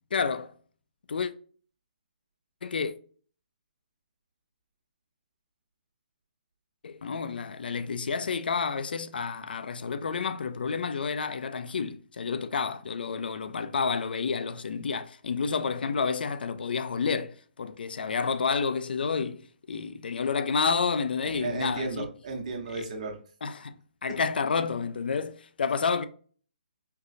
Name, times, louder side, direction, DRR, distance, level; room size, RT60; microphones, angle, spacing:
voice 1, 0.1-0.5 1.1-1.3 2.6-2.9 6.8-19.4 19.7-22.1 22.8-22.9 23.4-23.8 24.0-26.0, left 5 dB, 75° left, 0.5 m, -30 dB
voice 2, 21.2-23.2 24.1-24.2, right 3 dB, 45° right, 1.1 m, -34 dB
4.5 x 2.5 x 2.6 m
hypercardioid pair, 160°, 5 cm